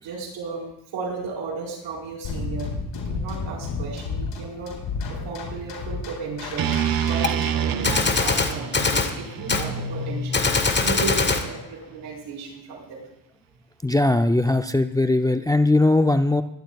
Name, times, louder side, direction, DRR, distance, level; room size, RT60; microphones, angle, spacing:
voice 1, 0.0-2.7 2.9-4.7 5.1-6.7 7.0-10.5 10.8-13.0, right 3 dB, 80° right, -2 dB, 4.8 m, -33 dB
sound 1, 2.2-7.8, left 4 dB, 70° left, 3.5 m, -31 dB
sound 2, 6.6-10.7, right 9 dB, 50° right, 0.9 m, -28 dB
Gunshot gunfire, 7.2-7.3 7.8-9.1 9.5-9.7 10.3-11.5, left 4 dB, 25° left, 1.4 m, -22 dB
voice 2, 13.8-16.4, left 2 dB, 10° left, 8 dB, 0.5 m, -19 dB
21.0 x 11.5 x 2.4 m, 0.81 s
cardioid pair, 85°, 45 cm